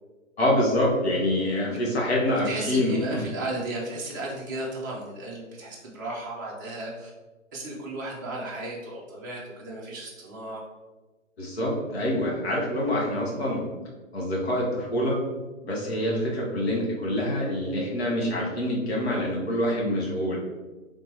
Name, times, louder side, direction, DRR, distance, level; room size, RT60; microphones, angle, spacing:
voice 1, 0.4-3.2 11.4-13.6 14.1-15.2 15.6-20.4, left 1 dB, 50° left, -4 dB, 1.2 m, -26 dB
voice 2, 2.4-7.1 7.5-10.6, right 2 dB, 15° right, -5 dB, 0.5 m, -34 dB
3.4 x 2.9 x 3.3 m, 1.2 s
figure-of-eight pair, 130°, 39 cm